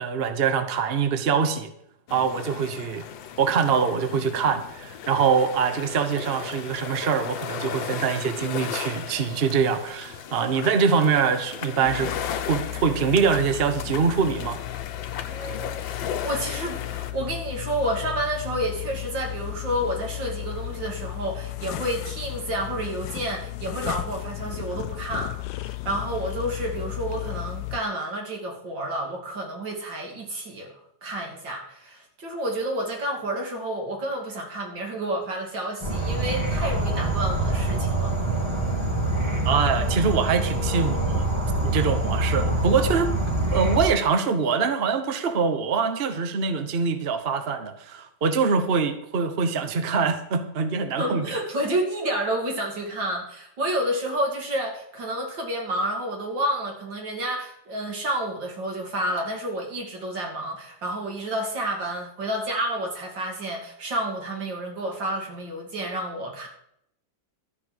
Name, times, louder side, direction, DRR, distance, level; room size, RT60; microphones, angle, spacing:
voice 1, 0.0-1.7 2.1-3.0 3.4-12.1 12.5-14.6 39.4-41.3 41.6-43.1 43.5-51.2, right 6 dB, 40° right, 8 dB, 1.1 m, -24 dB
sound 1, 2.1-17.1, left 8 dB, 90° left, 1.6 m, -36 dB
sound 2, 11.9-27.8, left 19 dB, 75° left, 1.1 m, -34 dB
voice 2, 15.3-15.9 16.2-38.2 51.0-66.5, right 1 dB, 75° right, 0 dB, 3.4 m, -30 dB
Insect / Frog, 35.8-43.9, right 1 dB, 15° right, 2.6 m, -25 dB
13.5 x 5.6 x 8.0 m, 0.72 s
omnidirectional pair, 2.0 m